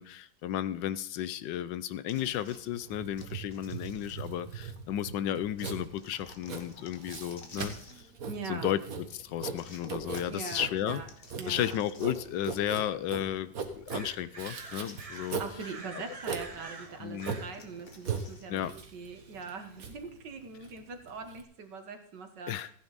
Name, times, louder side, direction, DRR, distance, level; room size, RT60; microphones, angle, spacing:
voice 1, 0.0-8.1 8.5-11.0 11.5-15.4 15.9-16.0 17.0-17.4 18.5-18.7 22.5-22.7, left 11 dB, 75° left, 15 dB, 1.2 m, -34 dB
sound 1, 2.1-4.8 5.6-8.1 9.6-12.5 12.8-12.9 14.7-18.5, left 3 dB, 35° left, 1.4 m, -53 dB
Writing, 2.3-21.4, right 5 dB, 50° right, 1.7 m, -40 dB
voice 2, 8.3-8.7 10.3-11.1 11.4-11.7 15.4-22.5, right 5 dB, 65° right, 6 dB, 2.0 m, -42 dB
sound 2, 12.1-12.2 12.6-12.7 13.1-13.2 13.9-17.7 18.8-19.5, right 3 dB, 35° right, 0.6 m, -47 dB
15.0 x 9.6 x 4.0 m, 0.65 s
omnidirectional pair, 2.0 m